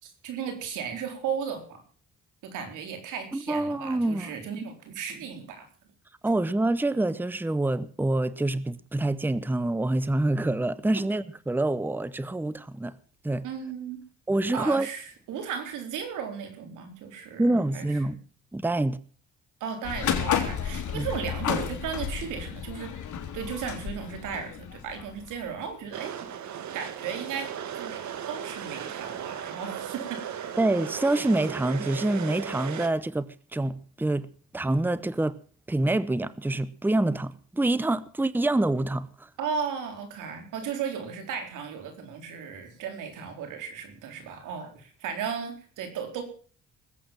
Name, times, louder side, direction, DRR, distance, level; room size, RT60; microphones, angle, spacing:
voice 1, 0.0-1.8 2.4-5.7 13.4-14.0 14.5-17.5 17.7-18.2 19.6-26.2 26.7-30.6 39.4-46.2, right 7 dB, 90° right, 4.2 m, -35 dB
voice 2, 3.3-4.3 6.2-12.9 13.2-13.4 14.3-14.9 17.4-18.2 18.5-19.0 20.9-21.1 30.6-34.3 34.5-35.4 35.7-39.3, right 2 dB, 5° right, 0.8 m, -26 dB
sound 1, 19.8-25.7, left 8 dB, 75° left, 3.1 m, -32 dB
sound 2, 25.9-32.9, right 9 dB, 70° right, 2.0 m, -36 dB
20.0 x 8.5 x 7.3 m
cardioid pair, 90°, 30 cm